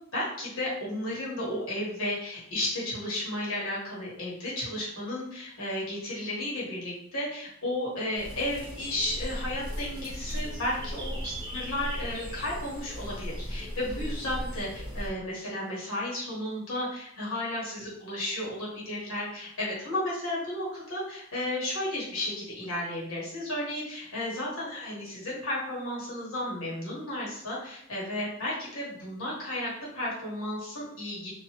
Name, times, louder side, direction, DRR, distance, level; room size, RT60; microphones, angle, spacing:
voice 1, 0.1-31.3, left 1 dB, 70° left, -6 dB, 1.2 m, -33 dB
sound 1, 8.1-15.1, equal, 20° right, 0.8 m, -37 dB
2.8 x 2.4 x 2.9 m, 0.70 s
head